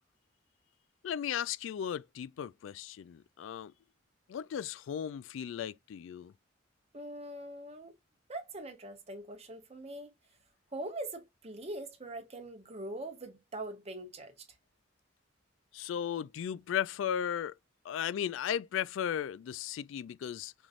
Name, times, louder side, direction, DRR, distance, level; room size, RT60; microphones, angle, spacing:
voice 1, 1.0-3.7 4.3-6.3 15.7-17.5 17.8-20.5, left 9 dB, 85° left, 0.3 m, -36 dB
voice 2, 6.9-7.9 8.3-10.1 10.7-14.3, right 1 dB, 35° right, 1.1 m, -42 dB
5.4 x 3.1 x 2.4 m
head